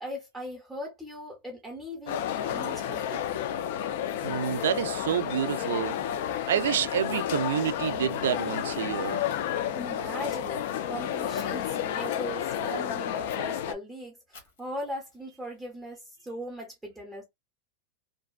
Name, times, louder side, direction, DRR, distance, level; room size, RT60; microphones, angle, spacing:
voice 1, 0.0-3.4 9.7-17.2, equal, 5° right, 0.6 m, -39 dB
sound 1, 2.1-13.7, left 10 dB, 55° left, 0.3 m, -31 dB
voice 2, 4.2-6.0 6.5-9.2, right 9 dB, 85° right, 0.3 m, -28 dB
Fire, 11.3-11.5 13.2-13.4 14.3-16.3, left 4 dB, 90° left, 1.1 m, -54 dB
2.5 x 2.2 x 2.3 m
supercardioid pair, 160°, 0 cm